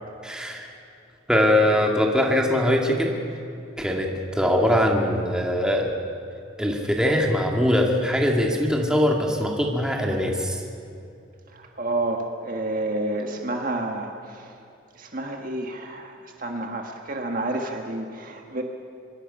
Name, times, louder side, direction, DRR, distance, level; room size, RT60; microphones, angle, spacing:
voice 1, 0.2-0.7 1.3-3.2 3.8-4.1 4.4-5.9 6.6-10.6, left 1 dB, 5° right, 0 dB, 2.2 m, -22 dB
voice 2, 11.5-14.5 14.9-18.6, right 2 dB, 40° right, 3 dB, 1.6 m, -30 dB
25.5 x 21.0 x 5.6 m, 2.6 s
head